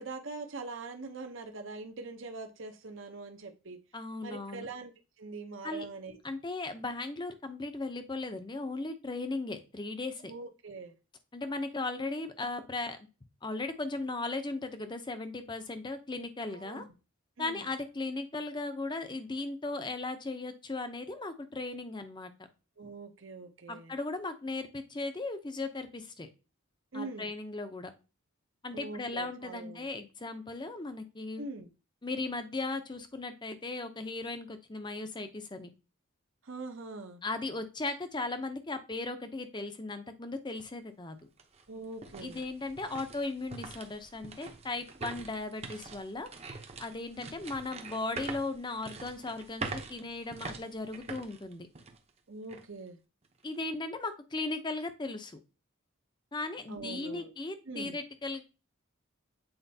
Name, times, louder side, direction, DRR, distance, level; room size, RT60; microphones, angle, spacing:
voice 1, 0.0-3.8 4.2-4.9 5.2-6.2 10.2-10.9 16.5-16.8 17.4-17.7 22.8-23.9 26.9-27.3 28.7-29.9 31.4-31.7 36.4-37.2 41.7-42.4 52.3-53.0 56.7-57.3 57.7-58.0, right 3 dB, 60° right, 0.8 m, -43 dB
voice 2, 3.9-4.7 5.6-5.9 6.2-10.3 11.3-13.0 13.4-16.8 17.4-22.3 23.7-26.3 26.9-27.9 28.6-31.4 32.0-35.7 37.2-41.2 42.2-46.3 46.8-51.7 53.4-55.4 56.3-58.4, left 3 dB, 20° left, 0.6 m, -37 dB
sound 1, 40.6-40.7 41.2-52.1 52.5-52.6 53.2-53.6, right 3 dB, 30° right, 0.8 m, -44 dB
8.0 x 4.3 x 2.8 m
head